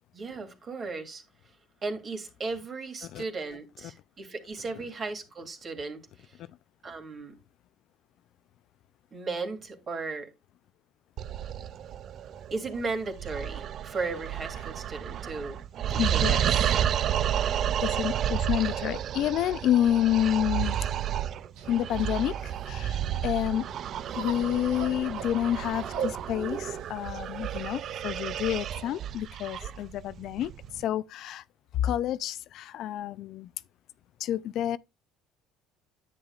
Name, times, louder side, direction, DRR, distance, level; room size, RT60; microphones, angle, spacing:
voice 1, 0.1-1.6 1.8-6.4 6.8-7.4 9.1-10.3 12.5-15.6 15.9-16.7 17.3-17.8 23.5-23.6 29.6-29.7, right 3 dB, 30° right, 2.5 m, -36 dB
sound 1, 11.2-30.8, right 10 dB, 45° right, 0.4 m, -31 dB
voice 2, 16.0-16.5 17.8-20.8 21.7-23.6 24.1-31.4 31.7-33.5 34.2-34.8, left 11 dB, 55° left, 0.4 m, -29 dB
sound 2, 21.5-28.7, right 6 dB, 70° right, 2.7 m, -42 dB
10.0 x 9.8 x 2.4 m
cardioid pair, 125°, 0 cm